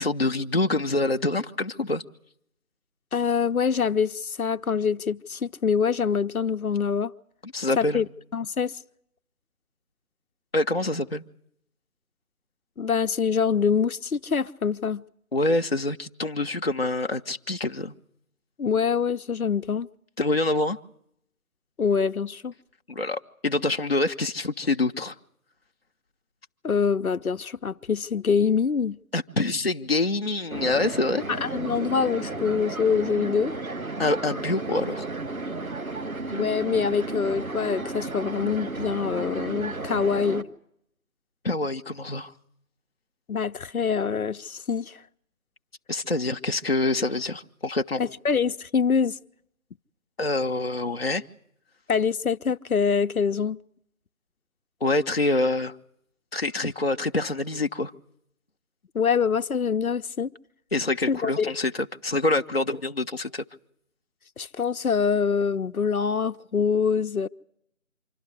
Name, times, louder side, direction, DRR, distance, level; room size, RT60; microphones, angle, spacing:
voice 1, 0.0-2.0 7.4-8.0 10.5-11.2 15.3-17.9 20.2-20.8 22.9-25.1 29.1-31.2 34.0-35.1 41.4-42.3 45.9-48.0 50.2-51.2 54.8-55.7 56.3-57.9 60.7-63.4, left 2 dB, 45° left, 0.8 m, -26 dB
voice 2, 3.1-7.1 7.8-8.1 8.3-8.8 12.8-15.0 18.6-19.9 21.8-22.5 26.6-29.0 31.3-33.5 36.3-40.5 43.3-45.0 48.0-49.2 51.9-53.6 58.9-60.3 61.1-61.5 64.4-67.3, left 6 dB, 85° left, 0.8 m, -25 dB
sound 1, 30.5-40.4, right 3 dB, 80° right, 1.7 m, -33 dB
25.5 x 12.5 x 9.7 m
figure-of-eight pair, 175°, 42 cm